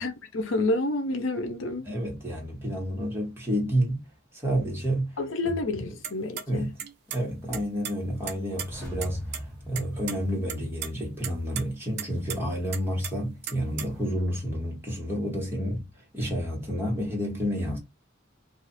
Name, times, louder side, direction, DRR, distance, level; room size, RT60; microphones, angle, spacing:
voice 1, 0.0-1.9 5.2-6.7, left 2 dB, 80° left, 0.6 m, -29 dB
voice 2, 1.8-4.0 4.3-5.1 5.4-5.9 6.5-6.7 7.1-17.8, equal, 10° right, 1.3 m, -30 dB
sound 1, 6.0-6.4 6.8-7.2 7.5-8.7 9.0-9.1 9.3-9.4 9.8-10.2 10.5-10.9 11.2-11.6 12.0-12.4 12.7-14.1, right 9 dB, 55° right, 0.5 m, -35 dB
sound 2, 8.4-11.3 11.6-11.7, equal, 10° left, 1.5 m, -42 dB
2.4 x 2.4 x 4.1 m
head